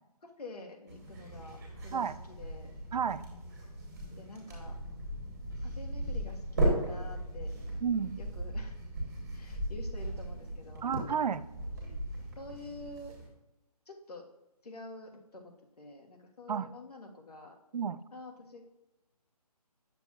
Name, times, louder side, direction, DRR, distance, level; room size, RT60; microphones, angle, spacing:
voice 1, 0.2-2.7 4.2-4.8 5.6-7.5 8.2-8.8 9.3-10.9 12.4-13.1 13.9-14.3 14.6-17.5 18.1-18.6, left 2 dB, 70° left, 2 dB, 1.4 m, -48 dB
sound 1, 0.9-13.3, right 1 dB, 25° right, 1.6 m, -37 dB
voice 2, 2.9-3.2 7.8-8.2 10.8-11.4 16.5-16.7 17.7-18.0, right 7 dB, 90° right, 16 dB, 0.4 m, -31 dB
8.9 x 6.8 x 2.4 m, 0.96 s
hypercardioid pair, 175°, 20 cm